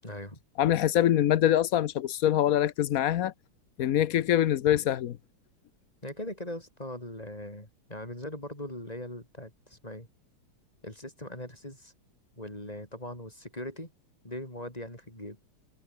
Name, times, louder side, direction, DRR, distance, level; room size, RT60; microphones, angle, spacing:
voice 1, 0.0-0.4 6.0-10.1 10.8-11.9 12.4-13.9 14.2-15.4, left 1 dB, 15° left, 7.2 m, -40 dB
voice 2, 0.6-3.3 3.8-5.2, left 11 dB, 70° left, 0.8 m, -24 dB
omnidirectional pair, 2.3 m